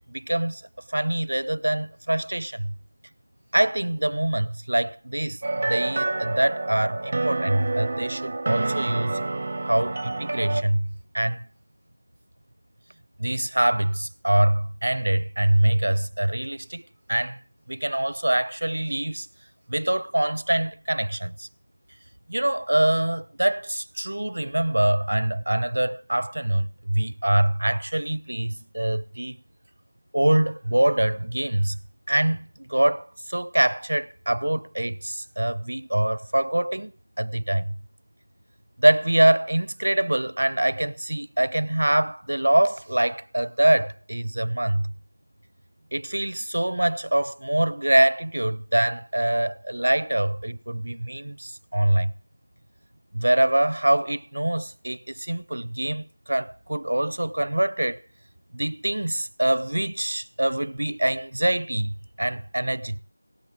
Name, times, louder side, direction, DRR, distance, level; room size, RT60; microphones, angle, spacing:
voice 1, 0.1-0.6 0.9-2.7 3.5-9.2 9.7-11.4 13.2-16.8 17.1-17.4 17.7-19.3 19.7-21.5 22.3-29.4 30.1-31.8 32.1-36.9 37.2-37.8 38.8-44.9 45.9-52.1 53.1-58.0 58.5-63.0, right 1 dB, 70° right, 0.6 m, -24 dB
sound 1, 5.4-10.6, right 2 dB, 35° right, 1.1 m, -28 dB
17.5 x 6.9 x 9.6 m
figure-of-eight pair, 170°, 0 cm